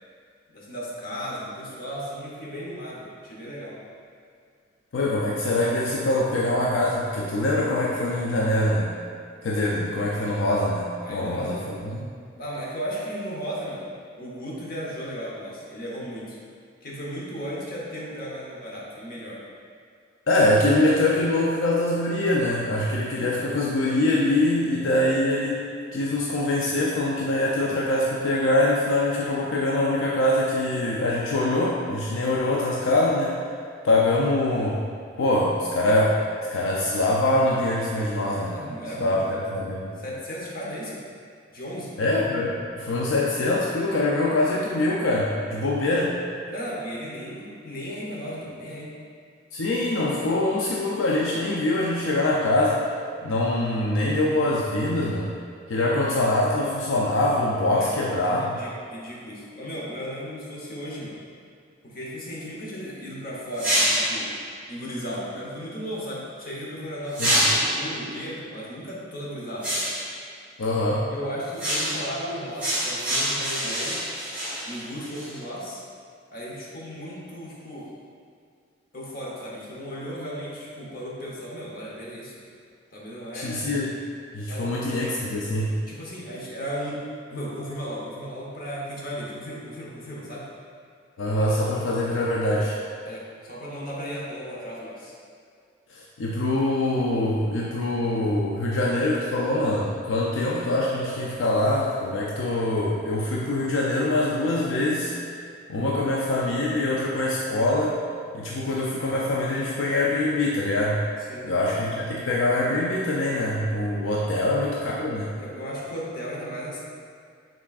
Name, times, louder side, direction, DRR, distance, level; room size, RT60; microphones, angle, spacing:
voice 1, 0.5-3.8 11.0-11.6 12.4-13.9 14.2-16.4 16.8-19.4 38.5-39.4 40.0-41.0 41.5-42.0 46.5-48.9 57.7-57.9 58.4-61.2 61.8-64.3 64.7-69.9 71.1-74.1 74.6-75.8 76.3-77.9 78.9-82.4 82.9-83.6 84.4-84.7 85.9-90.6 93.0-95.2 111.3-111.5 114.2-114.5 115.4-116.8, equal, 45° left, -5 dB, 0.9 m, -35 dB
voice 2, 4.9-9.0 9.4-12.0 20.3-25.6 25.9-33.3 33.8-34.9 35.2-36.2 36.5-38.6 39.0-39.9 42.0-46.2 49.5-52.8 53.2-55.3 55.7-58.6 67.2-67.4 70.6-71.1 83.3-83.9 84.3-85.8 91.2-92.8 95.9-105.1 105.7-108.0 108.3-111.0 111.4-115.3, left 1 dB, 75° left, -4 dB, 0.4 m, -24 dB
sound 1, 63.5-64.3 67.1-67.9 69.6-70.1 71.6-72.1 72.6-75.3, equal, 5° right, 1.5 m, -25 dB
5.8 x 3.6 x 2.4 m, 2.3 s
head